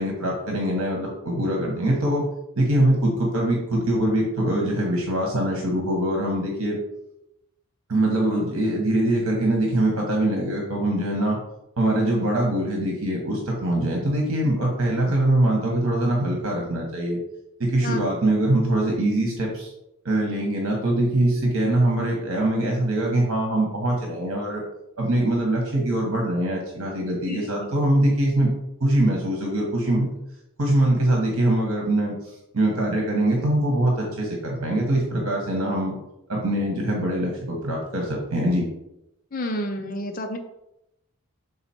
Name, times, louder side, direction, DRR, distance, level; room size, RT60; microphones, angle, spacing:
voice 1, 0.0-2.2 2.5-6.8 7.9-11.4 11.8-17.2 17.6-19.7 20.0-24.6 25.0-28.5 28.8-30.1 30.6-35.9 36.3-38.6, right 1 dB, 70° right, 0 dB, 1.2 m, -23 dB
voice 2, 17.8-18.1 27.3-27.8 39.3-40.4, left 1 dB, 40° left, 5 dB, 0.5 m, -30 dB
6.8 x 4.0 x 4.3 m, 0.86 s
head